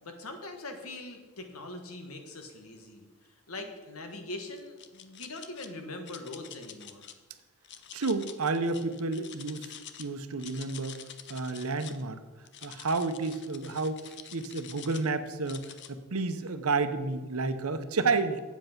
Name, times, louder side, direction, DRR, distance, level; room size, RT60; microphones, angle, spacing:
voice 1, 0.0-3.1 3.5-7.1, left 2 dB, 85° left, 5 dB, 1.5 m, -42 dB
sound 1, 4.6-5.7 6.1-7.1 7.6-10.1 10.3-12.0 12.5-15.1 15.5-15.9, left 9 dB, 55° left, 0.7 m, -47 dB
voice 2, 7.9-9.6 10.0-11.0 11.3-12.2 12.6-14.1 14.3-15.6 15.9-18.4, right 3 dB, 80° right, 10 dB, 0.8 m, -30 dB
8.1 x 8.0 x 5.9 m, 1.3 s
head